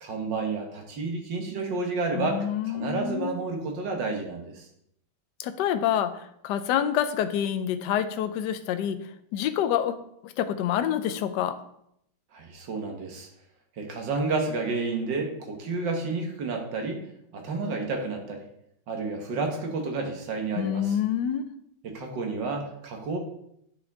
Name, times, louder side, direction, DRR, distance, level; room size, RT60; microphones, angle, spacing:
voice 1, 0.0-4.6 12.3-13.3 13.8-17.0 17.3-18.4 18.9-21.0 21.8-23.2, right 3 dB, 60° right, 2 dB, 1.9 m, -30 dB
voice 2, 2.1-3.4 5.4-9.0 9.3-10.0 10.2-11.6 20.5-21.4, left 10 dB, 70° left, 10 dB, 1.1 m, -27 dB
9.4 x 5.1 x 3.5 m, 0.74 s
omnidirectional pair, 2.2 m